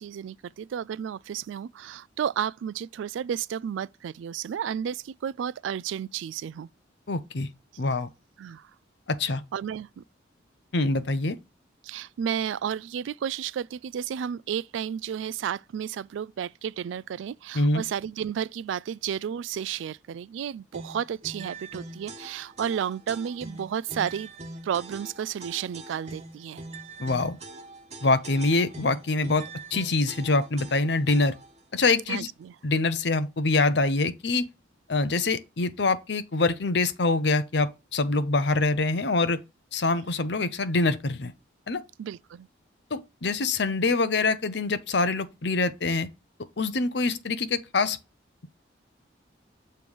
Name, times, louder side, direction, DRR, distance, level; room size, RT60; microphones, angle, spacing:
voice 1, 0.0-6.7 8.4-8.7 9.5-10.0 11.8-24.3 24.6-26.6 32.1-32.5 42.0-42.5, right 8 dB, 80° right, 0.3 m, -32 dB
voice 2, 7.1-7.5 7.8-8.1 9.1-9.4 10.7-11.4 17.5-17.8 27.0-27.4 28.0-29.4 29.7-31.3 31.7-32.3 32.6-34.5 34.9-39.4 39.7-41.3 41.7-41.8 42.9-46.1 46.6-48.0, left 3 dB, 65° left, 0.7 m, -25 dB
sound 1, 20.7-31.6, right 2 dB, 35° right, 1.1 m, -42 dB
6.8 x 3.2 x 5.3 m
head